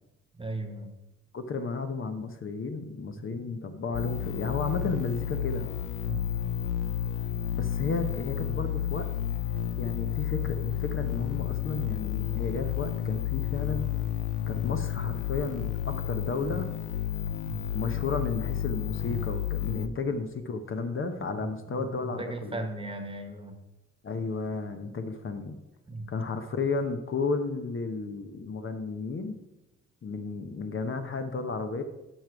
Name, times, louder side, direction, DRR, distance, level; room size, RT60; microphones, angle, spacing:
voice 1, 0.3-0.9 3.1-3.3 6.0-6.3 17.4-17.7 21.4-23.6 25.9-26.1, right 2 dB, 15° right, 6 dB, 1.3 m, -38 dB
voice 2, 1.3-5.7 7.5-9.1 9.8-13.9 14.5-16.7 17.7-22.6 24.0-25.6 26.1-29.4 30.0-31.8, left 4 dB, 45° left, 7 dB, 0.9 m, -33 dB
sound 1, 3.9-19.9, left 10 dB, 80° left, 0.6 m, -31 dB
10.0 x 6.0 x 4.7 m, 0.99 s
cardioid pair, 90°, 30 cm